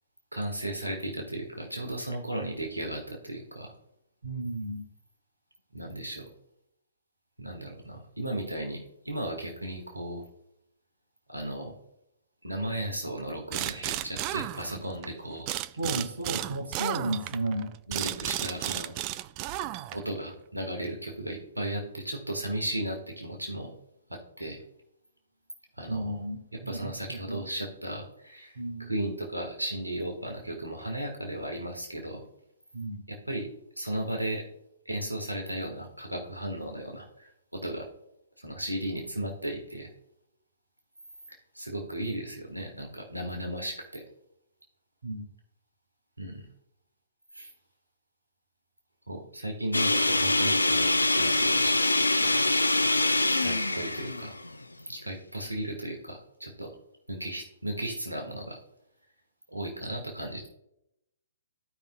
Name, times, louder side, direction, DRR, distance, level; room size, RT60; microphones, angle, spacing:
voice 1, 0.3-3.7 5.7-6.3 7.4-10.2 11.3-11.8 12.4-15.5 17.9-18.9 19.9-23.7 24.1-24.6 25.8-26.2 26.5-32.2 33.1-33.5 33.8-34.5 34.8-37.9 38.4-39.9 41.3-44.0 46.2-46.4 47.3-47.5 49.1-51.8 52.2-52.5 53.3-54.3 54.9-56.7 57.1-58.6 59.5-60.5, right 1 dB, 85° right, 2 dB, 1.5 m, -35 dB
voice 2, 4.2-4.9 15.8-17.7 25.9-26.4 26.6-27.4 28.6-28.9 32.7-33.0 45.0-45.3, right 1 dB, 65° right, 4 dB, 1.7 m, -33 dB
sound 1, 13.5-15.1 15.5-20.2, right 15 dB, 30° right, 0.3 m, -33 dB
sound 2, 49.7-54.9, left 2 dB, 80° left, 0.5 m, -24 dB
15.0 x 5.3 x 2.2 m, 0.81 s
figure-of-eight pair, 120°, 0 cm